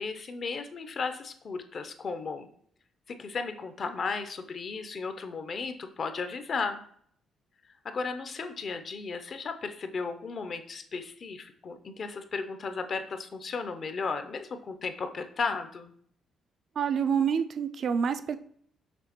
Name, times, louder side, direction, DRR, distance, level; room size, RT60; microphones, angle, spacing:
voice 1, 0.0-2.5 3.1-6.8 7.8-15.9, left 4 dB, 50° left, 8 dB, 0.5 m, -35 dB
voice 2, 16.8-18.4, right 7 dB, 55° right, 11 dB, 0.3 m, -27 dB
6.0 x 2.9 x 2.9 m, 0.62 s
cardioid pair, 90°, 0 cm